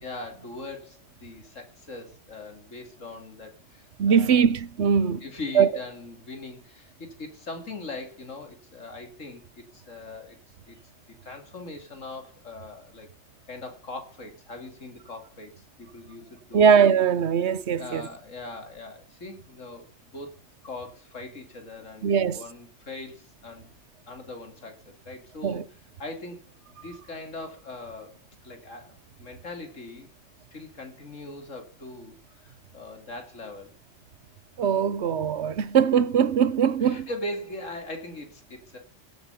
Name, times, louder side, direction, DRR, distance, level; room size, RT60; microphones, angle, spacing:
voice 1, 0.0-4.4 5.2-10.4 10.7-10.8 11.2-13.1 13.5-16.7 17.8-20.4 20.6-23.7 24.1-25.6 26.0-26.4 26.7-30.1 30.5-33.7 36.8-38.8, left 2 dB, 85° left, 3.2 m, -40 dB
voice 2, 4.0-5.2 5.5-5.7 16.5-18.0 22.0-22.4 25.4-25.6 34.6-37.1, right 7 dB, 65° right, 1.1 m, -21 dB
17.0 x 8.5 x 5.7 m
omnidirectional pair, 1.3 m